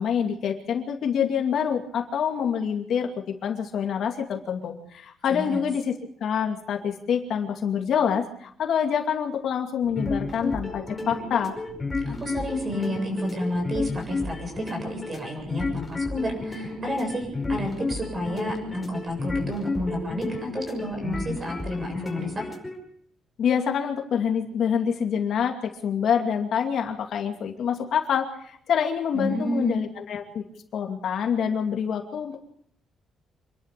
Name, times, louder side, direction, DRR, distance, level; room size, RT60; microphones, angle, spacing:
voice 1, 0.0-5.9 6.2-11.5 23.4-30.4 30.7-32.4, left 7 dB, 55° left, 3 dB, 2.5 m, -26 dB
voice 2, 5.3-5.6 12.1-22.3 29.1-29.8, equal, 25° right, 3 dB, 7.7 m, -30 dB
sound 1, 9.8-22.7, left 3 dB, 15° left, 5.3 m, -32 dB
27.0 x 12.0 x 8.3 m, 0.67 s
cardioid pair, 165°, 0 cm